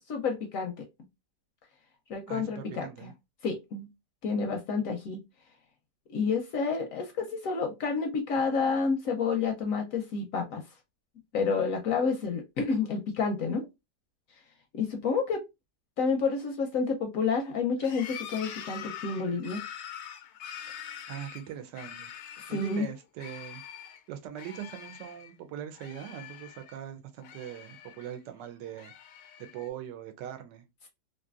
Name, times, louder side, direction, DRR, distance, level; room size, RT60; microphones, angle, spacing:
voice 1, 0.1-0.7 2.1-3.1 3.4-3.9 4.2-5.2 6.1-10.6 11.3-13.7 14.7-15.4 16.0-19.6 22.5-22.9, left 5 dB, 65° left, 0.9 m, -29 dB
voice 2, 2.3-3.1 21.1-22.1 22.5-23.6 24.1-28.9 29.4-30.7, right 10 dB, 85° right, 1.2 m, -41 dB
sound 1, 17.8-22.9 23.2-24.0 24.4-25.3 25.6-26.8 27.2-28.2 28.7-29.7, left 9 dB, 90° left, 1.3 m, -44 dB
3.2 x 2.6 x 2.3 m
omnidirectional pair, 1.9 m